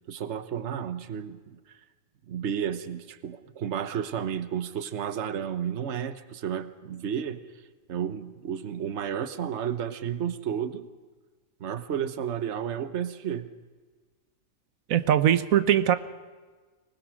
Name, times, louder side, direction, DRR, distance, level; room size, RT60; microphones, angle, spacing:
voice 1, 0.1-1.6 2.3-7.4 7.9-10.9 11.6-13.5, right 8 dB, 60° right, 12 dB, 1.2 m, -32 dB
voice 2, 14.9-16.0, right 10 dB, 90° right, 12 dB, 1.3 m, -21 dB
24.5 x 20.0 x 6.3 m, 1.3 s
omnidirectional pair, 1.4 m